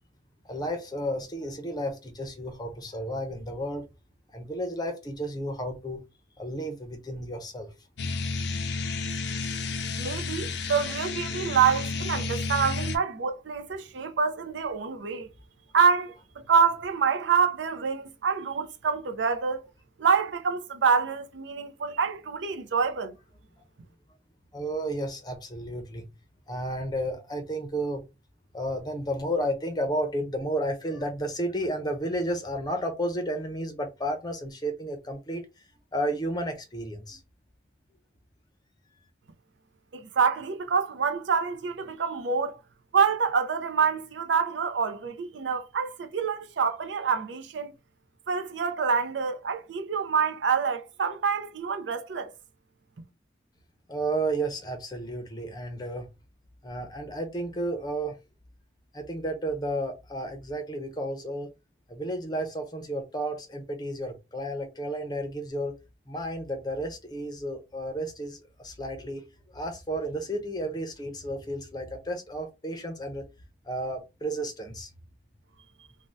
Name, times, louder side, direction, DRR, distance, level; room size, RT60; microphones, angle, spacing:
voice 1, 0.4-3.9 4.3-6.0 6.4-7.7 24.5-26.1 26.5-28.0 28.5-35.5 35.9-37.2 53.9-56.1 56.6-58.2 58.9-61.5 61.9-65.8 66.1-69.2 69.5-73.2 73.6-74.9, right 1 dB, 20° left, 0.6 m, -32 dB
sound 1, 8.0-13.0, left 4 dB, 70° left, 0.5 m, -31 dB
voice 2, 10.0-15.3 15.7-16.1 16.5-19.7 20.0-23.1 39.9-42.6 42.9-47.7 48.3-52.3, right 6 dB, 75° right, 0.5 m, -26 dB
2.6 x 2.1 x 3.3 m
head